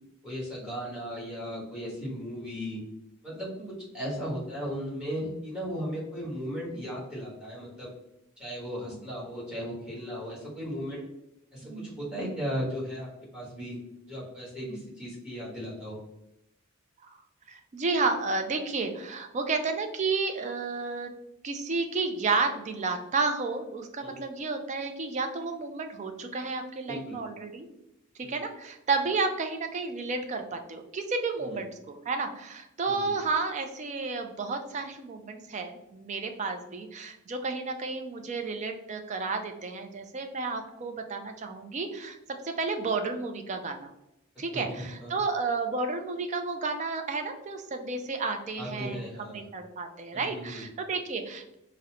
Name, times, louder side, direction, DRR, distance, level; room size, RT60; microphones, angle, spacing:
voice 1, 0.2-2.8 3.2-3.5 3.9-7.9 8.4-11.0 11.5-13.8 14.1-16.0 24.0-24.2 26.9-27.2 28.2-28.4 31.4-31.6 32.8-33.1 44.5-45.2 48.6-49.4 50.1-50.6, equal, 5° right, -6 dB, 1.2 m, -36 dB
voice 2, 17.5-21.1 21.4-27.7 28.2-42.2 42.4-43.9 44.4-49.0 49.3-51.5, right 4 dB, 35° right, 6 dB, 0.4 m, -31 dB
3.9 x 2.1 x 2.8 m, 0.86 s
head